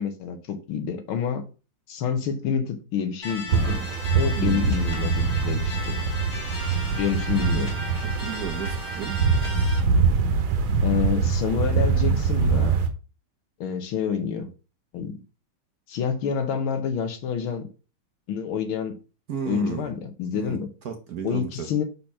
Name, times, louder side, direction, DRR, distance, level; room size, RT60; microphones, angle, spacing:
voice 1, 0.0-1.4 1.9-3.9 4.1-6.0 6.9-7.8 10.8-12.7 13.6-14.5 14.9-15.2 15.9-17.7 18.3-19.0 19.5-20.7 21.2-21.8, left 7 dB, 80° left, 1.9 m, -28 dB
sound 1, 3.2-9.8, left 1 dB, 30° left, 2.8 m, -36 dB
sound 2, 3.5-12.9, right 5 dB, 75° right, 1.8 m, -24 dB
voice 2, 4.4-4.7 8.0-9.2 19.3-20.0 20.3-20.6 20.8-21.7, right 8 dB, 60° right, 1.1 m, -33 dB
5.1 x 4.2 x 5.9 m
omnidirectional pair, 2.3 m